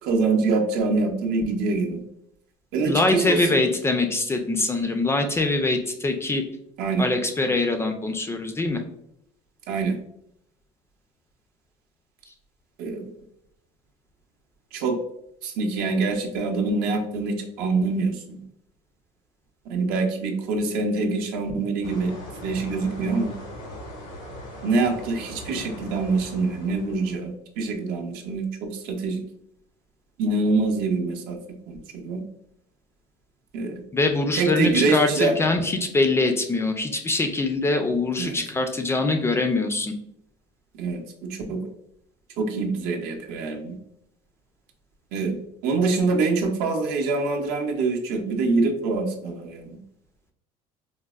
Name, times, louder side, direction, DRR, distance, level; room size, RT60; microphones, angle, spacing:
voice 1, 0.0-2.0 2.7-3.4 6.8-7.1 9.7-10.0 12.8-13.1 14.7-15.0 15.4-18.4 19.7-22.1 22.4-23.3 24.6-29.2 30.2-31.4 31.7-32.2 33.5-33.8 34.3-35.3 38.2-38.4 40.7-41.7 42.4-43.8 45.1-49.8, right 3 dB, 70° right, 3 dB, 0.6 m, -25 dB
voice 2, 2.8-6.4 7.0-8.8 33.9-39.9, left 2 dB, 15° left, 5 dB, 0.3 m, -23 dB
sound 1, 21.8-27.2, left 1 dB, 90° left, 1.3 m, -39 dB
3.9 x 2.0 x 2.3 m, 0.77 s
cardioid pair, 110°, 16 cm